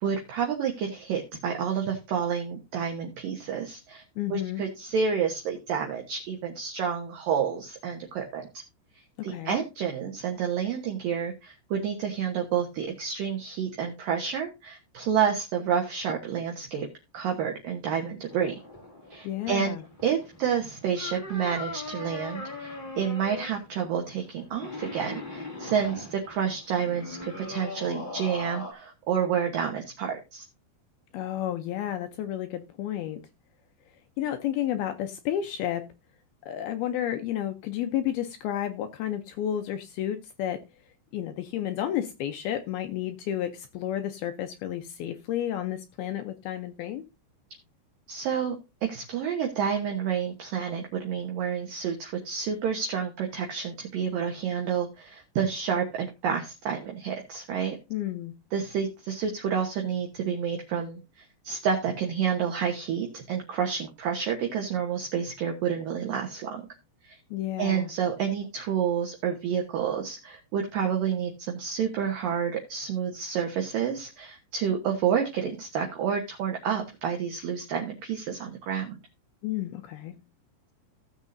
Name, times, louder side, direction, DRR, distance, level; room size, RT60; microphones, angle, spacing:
voice 1, 0.0-4.0 4.3-8.6 9.2-16.9 17.1-18.6 19.1-19.7 20.0-30.4 48.1-48.6 48.8-57.8 58.5-66.6 67.0-67.2 67.6-79.0, right 7 dB, 65° right, 2 dB, 2.3 m, -29 dB
voice 2, 4.2-4.6 9.3-9.6 19.2-19.8 31.1-33.2 34.2-35.8 36.4-40.6 41.1-47.0 57.9-58.3 67.3-67.9 79.4-80.1, left 11 dB, 80° left, 7 dB, 2.2 m, -31 dB
sound 1, 18.3-28.7, left 2 dB, 55° left, 0.5 m, -40 dB
16.0 x 7.2 x 2.6 m, 0.26 s
omnidirectional pair, 5.2 m